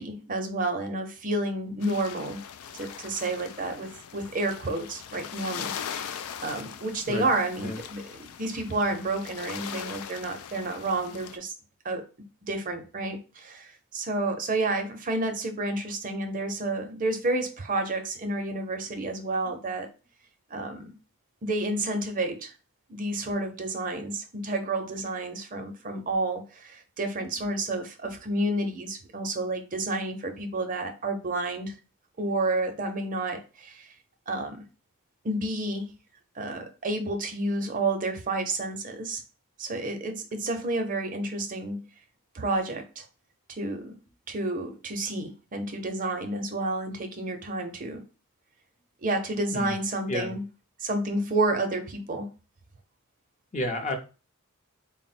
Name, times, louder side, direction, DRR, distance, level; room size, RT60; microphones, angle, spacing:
voice 1, 0.0-2.4 2.7-11.5 11.8-12.0 12.4-19.9 20.5-20.9 21.4-22.5 22.9-31.7 32.2-33.9 34.3-34.6 35.2-35.9 36.4-39.2 39.6-41.8 42.3-43.0 43.5-43.9 44.3-48.0 49.0-50.4 50.8-52.3, right 2 dB, 40° right, 5 dB, 0.6 m, -30 dB
sound 1, 1.8-11.4, left 8 dB, 85° left, 0.4 m, -40 dB
voice 2, 27.1-27.5 49.5-49.8 50.1-50.4 51.7-52.0 53.5-54.0, left 1 dB, 35° left, 4 dB, 0.6 m, -33 dB
4.0 x 2.0 x 4.0 m, 0.33 s
head